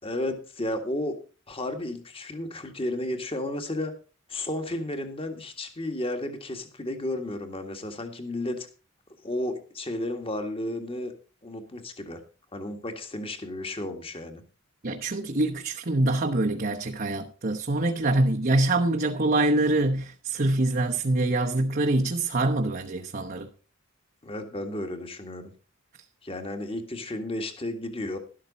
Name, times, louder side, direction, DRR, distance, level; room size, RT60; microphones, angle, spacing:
voice 1, 0.0-1.1 1.5-3.9 4.3-8.7 9.2-11.1 11.4-12.2 12.5-14.4 24.2-25.5 26.2-28.2, left 1 dB, 25° left, 1.8 m, -33 dB
voice 2, 14.8-23.5, right 2 dB, 45° right, 1.0 m, -25 dB
12.5 x 12.0 x 4.1 m
head